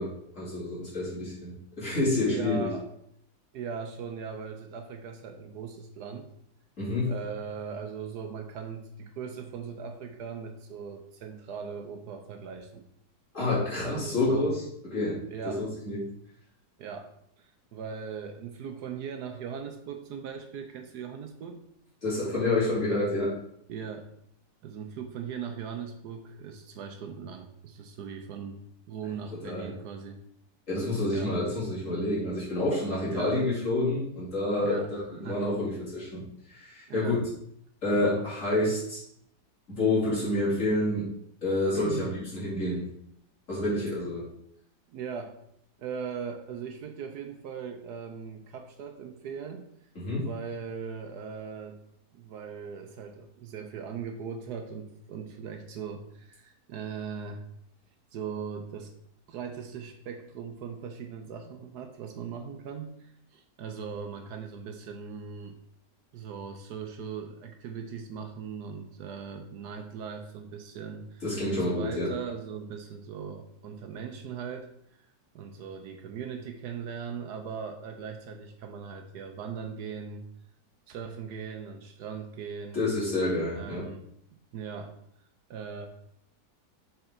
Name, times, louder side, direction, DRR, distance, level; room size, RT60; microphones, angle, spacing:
voice 1, 0.0-2.7 6.8-7.1 13.3-16.0 22.0-23.3 29.4-29.7 30.7-36.2 36.5-37.2 37.8-39.0 39.7-41.1 41.4-42.8 43.5-44.2 49.9-50.3 71.2-72.1 82.7-83.8, left 2 dB, 45° left, -8 dB, 3.2 m, -28 dB
voice 2, 2.3-2.9 3.5-6.3 7.1-12.8 13.8-14.5 15.3-15.7 16.8-17.1 17.4-21.6 23.7-24.1 24.6-28.6 28.9-30.2 31.1-31.4 33.1-33.4 34.6-35.5 36.9-37.2 37.9-38.3 41.7-42.2 44.9-45.4 45.8-49.6 50.1-51.8 52.1-57.4 58.1-58.9 59.3-65.6 66.1-71.2 71.5-74.7 75.3-80.3 80.9-82.8 83.5-84.0 84.5-84.9 85.5-85.9, right 6 dB, 70° right, 6 dB, 1.2 m, -39 dB
7.1 x 4.4 x 3.8 m, 0.71 s
omnidirectional pair, 1.9 m